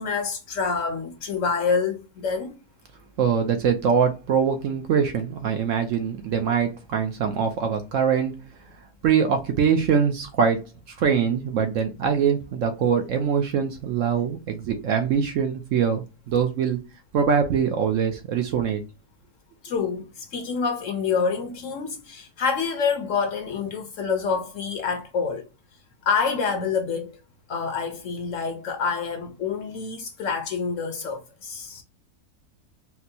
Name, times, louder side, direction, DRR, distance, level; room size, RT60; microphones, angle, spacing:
voice 1, 0.0-2.6 19.6-25.5 26.0-27.2 27.5-31.8, left 5 dB, 65° left, 0.9 m, -27 dB
voice 2, 3.2-8.4 9.0-10.6 10.9-16.8 17.1-18.8, right 7 dB, 65° right, 0.8 m, -23 dB
4.3 x 2.0 x 2.7 m
omnidirectional pair, 1.7 m